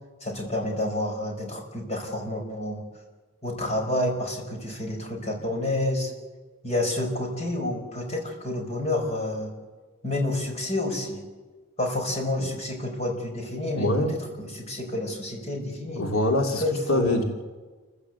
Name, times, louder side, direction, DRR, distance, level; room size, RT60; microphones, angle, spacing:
voice 1, 0.2-2.9 3.4-6.1 6.6-9.5 10.0-11.2 11.8-16.0 16.6-17.2, left 1 dB, 30° left, 2 dB, 5.0 m, -29 dB
voice 2, 13.8-14.1 16.0-16.6 16.9-17.2, left 1 dB, 85° left, 3 dB, 2.6 m, -24 dB
29.0 x 15.5 x 8.1 m, 1.3 s
head